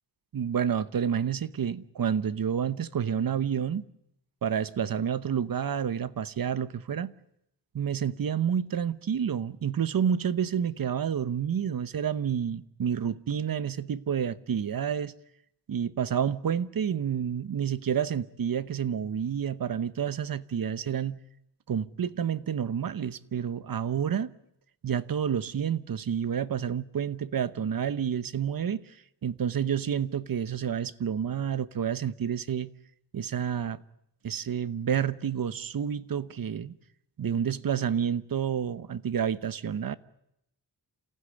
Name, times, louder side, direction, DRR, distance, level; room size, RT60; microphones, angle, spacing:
voice 1, 0.3-3.8 4.4-7.1 7.7-15.1 15.7-21.2 21.7-24.3 24.8-28.9 29.2-32.7 33.1-33.8 34.2-36.8 37.2-40.0, right 8 dB, 55° right, 0.9 m, -29 dB
28.0 x 15.5 x 9.8 m
wide cardioid pair, 140°, 43 cm